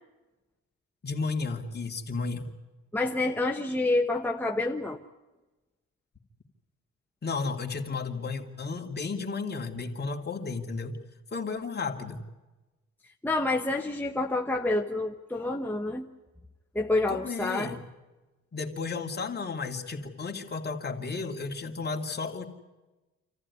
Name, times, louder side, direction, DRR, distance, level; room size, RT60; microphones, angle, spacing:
voice 1, 1.0-2.5 7.2-11.0 11.3-12.2 17.1-17.8 18.5-22.4, left 4 dB, 35° left, 2 dB, 2.7 m, -33 dB
voice 2, 2.9-5.0 13.2-16.1 16.7-17.7, left 2 dB, 5° left, 2 dB, 1.2 m, -28 dB
27.0 x 14.5 x 9.7 m, 1.1 s
cardioid pair, 90°, 30 cm